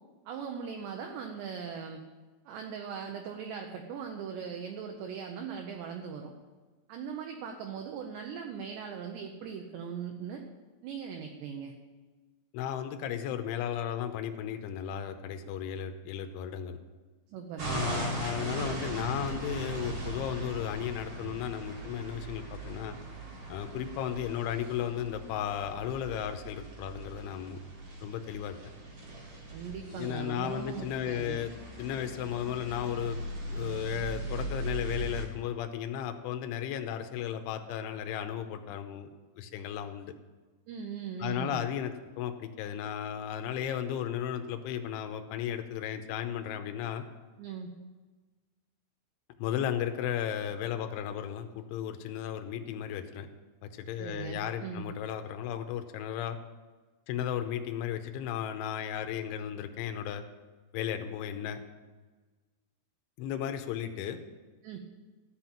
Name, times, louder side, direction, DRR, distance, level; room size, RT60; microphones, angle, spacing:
voice 1, 0.3-2.0 2.5-6.3 6.9-10.4 10.8-11.7 17.3-18.0 29.5-31.4 40.7-41.6 47.4-47.7 54.0-54.8 64.6-64.8, right 6 dB, 80° right, 3 dB, 2.6 m, -39 dB
voice 2, 12.5-16.8 17.6-23.0 23.5-27.6 28.0-28.6 29.9-31.5 31.8-33.2 33.5-39.1 39.4-40.1 41.2-47.0 49.4-53.3 53.6-56.4 57.1-60.2 60.7-61.6 63.2-64.2, left 9 dB, 80° left, 7 dB, 3.0 m, -35 dB
sound 1, 17.6-35.3, right 2 dB, 45° right, 2.2 m, -39 dB
13.5 x 6.1 x 8.7 m, 1.3 s
omnidirectional pair, 6.0 m